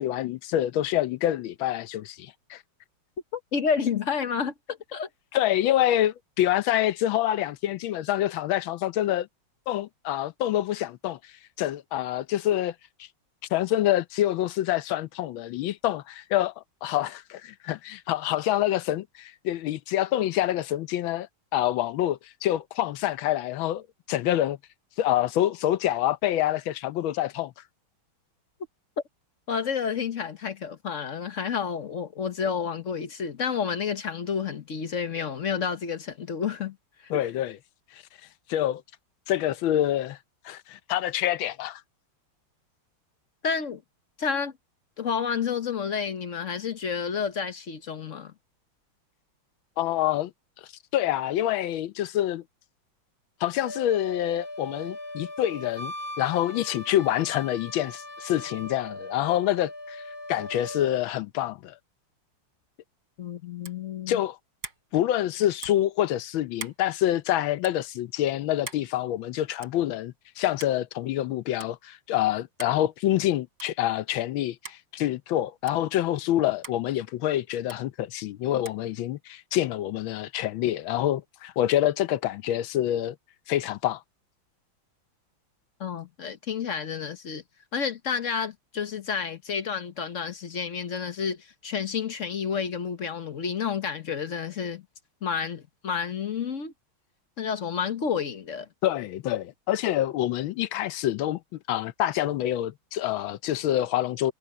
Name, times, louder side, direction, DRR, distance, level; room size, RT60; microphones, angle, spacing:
voice 1, 0.0-2.6 5.3-9.3 9.7-11.3 11.6-12.7 13.5-24.6 25.0-27.5 37.1-37.6 37.9-38.0 38.5-38.8 39.3-40.2 40.4-41.8 49.8-50.3 50.9-52.4 53.4-60.0 60.3-61.7 64.1-64.4 64.9-83.2 83.5-84.0 98.8-104.3, left 13 dB, 75° left, 1.5 m, -26 dB
voice 2, 3.3-5.1 29.5-36.8 37.0-37.3 43.4-43.8 44.2-44.5 45.0-48.3 63.2-64.2 85.8-87.4 87.7-94.8 95.2-96.7 97.4-98.7, left 6 dB, 45° left, 1.2 m, -30 dB
Wind instrument woodwind instrument, 53.6-61.0, left 1 dB, 15° left, 1.0 m, -39 dB
sound 1, 63.6-63.9 64.6-64.9 65.6-65.9 66.6-66.8 67.6-67.8 68.7-68.9 69.6-69.8 70.6-70.8 71.6-71.7 72.6-72.8 73.6-73.8 74.6-74.8 75.7-75.8 76.6-76.8 77.7-77.8 78.7-78.8, right 4 dB, 65° right, 4.2 m, -41 dB
omnidirectional pair, 2.2 m